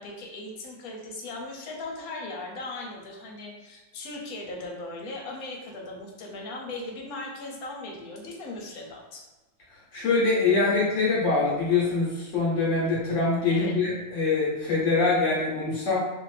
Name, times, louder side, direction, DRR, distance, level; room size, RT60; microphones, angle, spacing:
voice 1, 0.0-9.2 13.5-13.7, left 2 dB, 85° left, 0 dB, 1.2 m, -38 dB
voice 2, 9.7-16.0, left 3 dB, 60° left, -6 dB, 1.1 m, -24 dB
2.7 x 2.5 x 3.2 m, 1.1 s
omnidirectional pair, 1.5 m